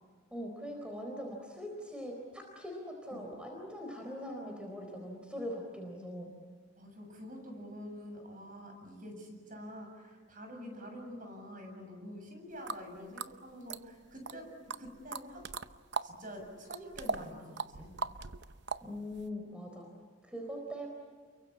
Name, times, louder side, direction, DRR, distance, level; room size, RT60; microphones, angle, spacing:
voice 1, 0.3-6.3 18.8-19.9 20.2-20.9, equal, 5° right, 1 dB, 4.0 m, -42 dB
voice 2, 6.8-15.5 16.0-17.9, equal, 40° right, 4 dB, 7.3 m, -47 dB
sound 1, 12.7-12.8 13.2-14.3 14.7-16.1 16.4-19.3, right 4 dB, 55° right, 0.8 m, -39 dB
29.5 x 23.0 x 8.7 m, 1.5 s
head